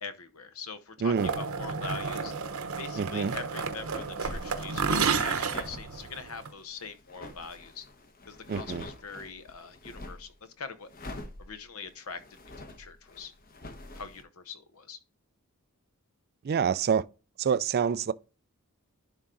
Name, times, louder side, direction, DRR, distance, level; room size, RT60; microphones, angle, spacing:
voice 1, 0.0-7.8 8.3-10.9 11.4-12.2 12.6-13.3 13.9-15.0, left 5 dB, 70° left, 0.9 m, -43 dB
sound 1, 1.2-6.5, right 5 dB, 70° right, 0.9 m, -31 dB
voice 2, 3.0-3.3 8.5-8.8 16.4-17.0 17.4-18.1, right 7 dB, 45° right, 0.3 m, -26 dB
sound 2, 3.7-10.3 10.9-14.2, left 1 dB, 40° left, 1.0 m, -46 dB
11.0 x 3.7 x 3.8 m
head